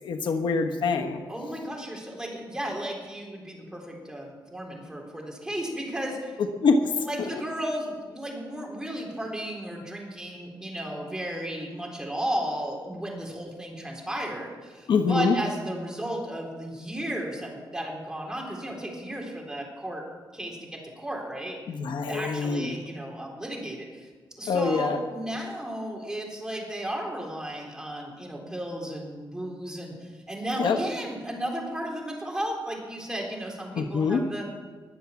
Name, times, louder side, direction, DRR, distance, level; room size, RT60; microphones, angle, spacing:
voice 1, 0.0-1.2 6.6-6.8 7.3-7.4 14.9-15.3 21.7-22.7 24.5-25.0 30.6-30.8 33.7-34.2, left 4 dB, 80° left, 5 dB, 1.2 m, -24 dB
voice 2, 1.3-6.4 7.0-20.0 20.3-21.6 22.1-24.1 24.4-34.4, right 1 dB, 10° right, -1 dB, 3.8 m, -34 dB
20.5 x 7.4 x 7.1 m, 1.4 s
wide cardioid pair, 115°, 8 cm